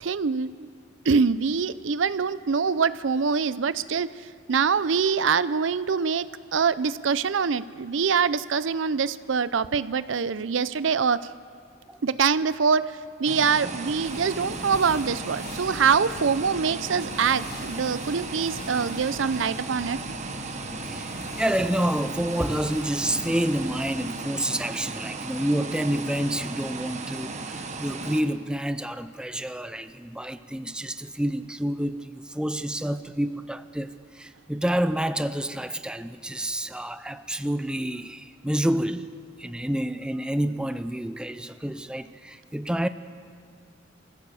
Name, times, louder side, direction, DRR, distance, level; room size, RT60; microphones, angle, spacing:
voice 1, 0.0-0.7 1.0-4.1 4.5-6.3 6.5-11.3 12.0-20.0, right 5 dB, 70° right, 16 dB, 0.5 m, -24 dB
sound 1, 13.3-28.2, right 3 dB, 40° right, 1.2 m, -35 dB
sound 2, 13.9-24.2, left 3 dB, 50° left, 1.0 m, -44 dB
voice 2, 20.8-39.1 39.4-42.9, right 1 dB, 5° right, 11 dB, 0.5 m, -28 dB
24.0 x 16.0 x 7.0 m, 2.3 s
head